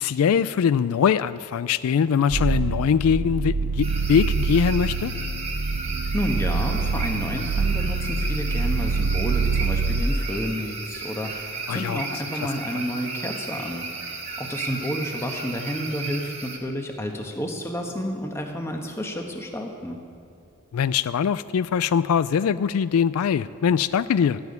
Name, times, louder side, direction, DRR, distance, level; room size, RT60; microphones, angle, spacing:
voice 1, 0.0-5.1 11.7-12.0 12.3-12.8 20.7-24.4, left 7 dB, 85° left, 16 dB, 0.3 m, -22 dB
sound 1, 2.3-10.0, right 4 dB, 60° right, 0.5 m, -25 dB
sound 2, 3.8-16.6, right 4 dB, 30° right, 1.4 m, -34 dB
voice 2, 6.1-13.9 14.4-20.0, equal, 10° left, 2 dB, 1.2 m, -30 dB
15.5 x 7.2 x 9.6 m, 2.5 s
head